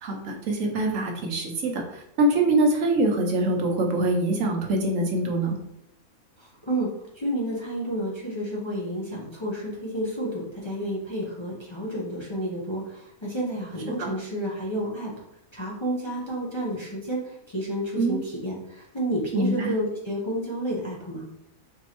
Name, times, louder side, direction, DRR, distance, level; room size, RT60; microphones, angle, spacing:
voice 1, 0.0-5.6 14.0-14.1 18.0-18.2 19.3-19.7, right 2 dB, 70° right, 2 dB, 1.1 m, -24 dB
voice 2, 6.4-15.1 15.5-21.3, right 1 dB, 25° left, -5 dB, 0.6 m, -30 dB
4.5 x 3.0 x 2.9 m, 0.79 s
omnidirectional pair, 1.5 m